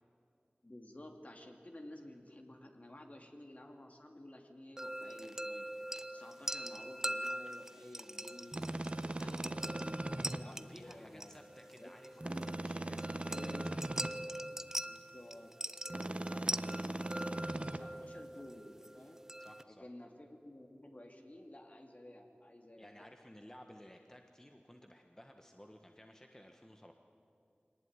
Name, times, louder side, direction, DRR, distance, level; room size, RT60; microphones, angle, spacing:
voice 1, 0.6-11.3 11.8-12.6 13.3-13.6 14.8-15.5 15.8-19.2 19.7-22.9, left 1 dB, 40° left, 3 dB, 2.6 m, -53 dB
sound 1, 4.8-19.6, right 1 dB, 15° right, 0.7 m, -43 dB
sound 2, 8.5-10.4 12.2-14.1 15.9-17.8, right 1 dB, 35° right, 1.0 m, -39 dB
voice 2, 10.4-13.5 16.3-16.5 19.4-19.9 22.8-26.9, equal, 15° left, 3 dB, 1.4 m, -57 dB
22.5 x 19.5 x 9.7 m, 2.6 s
wide cardioid pair, 55°, 4 cm